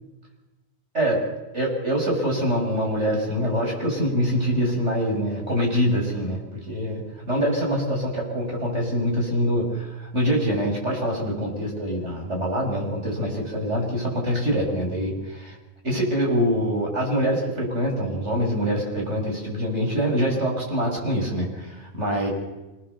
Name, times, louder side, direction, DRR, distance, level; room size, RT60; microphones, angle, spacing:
voice 1, 1.5-15.5 15.8-22.3, equal, 80° right, 0 dB, 6.8 m, -24 dB
26.5 x 19.0 x 7.0 m, 1.1 s
omnidirectional pair, 1.2 m